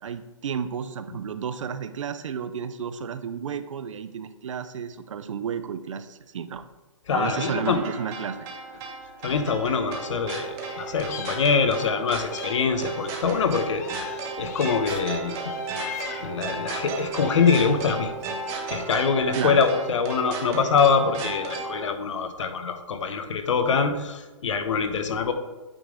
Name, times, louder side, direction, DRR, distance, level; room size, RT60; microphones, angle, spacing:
voice 1, 0.0-6.6 7.1-8.4 19.3-19.7, right 7 dB, 70° right, 11 dB, 0.5 m, -32 dB
voice 2, 7.1-7.8 9.2-15.5 16.2-18.1 18.7-25.3, left 5 dB, 65° left, 8 dB, 0.9 m, -24 dB
sound 1, 7.2-21.9, right 3 dB, 15° right, 0.6 m, -34 dB
Meow, 10.5-11.9 12.3-15.0 15.4-16.4 17.0-17.8, left 8 dB, 30° left, 0.5 m, -41 dB
8.7 x 3.2 x 3.7 m, 1.2 s
hypercardioid pair, 160°, 17 cm